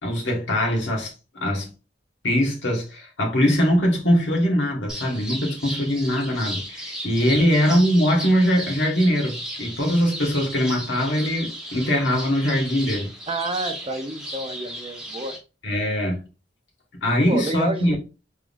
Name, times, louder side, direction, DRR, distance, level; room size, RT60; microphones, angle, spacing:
voice 1, 0.0-1.7 2.2-13.1 15.6-16.2 17.0-18.0, equal, 75° left, 1.4 m, -22 dB
sound 1, 4.9-15.4, equal, 5° right, 1.0 m, -35 dB
voice 2, 13.3-15.4 17.3-18.0, right 2 dB, 30° right, 0.5 m, -29 dB
3.6 x 3.5 x 2.4 m
head